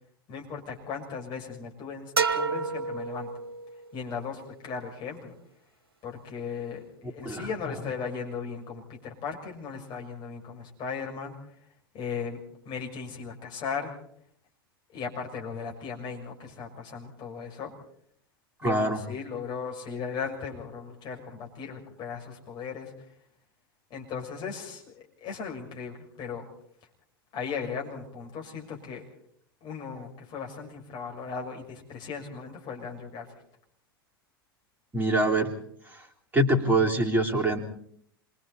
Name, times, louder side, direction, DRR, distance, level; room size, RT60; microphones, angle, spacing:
voice 1, 0.3-3.3 3.9-5.3 6.0-11.4 11.9-12.4 12.6-13.9 14.9-17.7 18.6-22.9 23.9-26.5 27.3-29.0 29.6-33.3, left 6 dB, 35° left, 0 dB, 6.5 m, -37 dB
sound 1, 2.2-3.9, right 4 dB, 75° right, 1.7 m, -29 dB
voice 2, 18.6-19.0 34.9-35.5 35.9-36.0 36.3-37.6, right 1 dB, 15° right, 1 dB, 3.7 m, -24 dB
27.0 x 23.5 x 4.3 m, 0.65 s
figure-of-eight pair, 90°, 12 cm